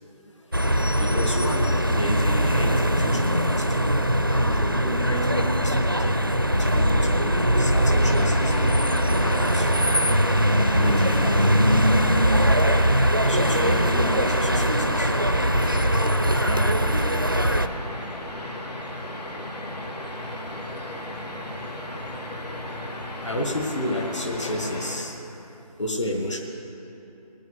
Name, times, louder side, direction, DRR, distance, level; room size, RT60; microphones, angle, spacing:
voice 1, 0.3-3.9 4.3-6.2 6.5-9.7 10.8-11.7 13.3-15.1 16.4-17.1 23.2-25.2 25.8-26.4, left 1 dB, 50° left, 2 dB, 1.4 m, -32 dB
sound 1, 0.5-17.7, equal, 35° right, 0.4 m, -21 dB
sound 2, 8.0-25.0, left 1 dB, 90° left, 2.5 m, -35 dB
18.0 x 9.3 x 7.9 m, 3.0 s
figure-of-eight pair, 180°, 20 cm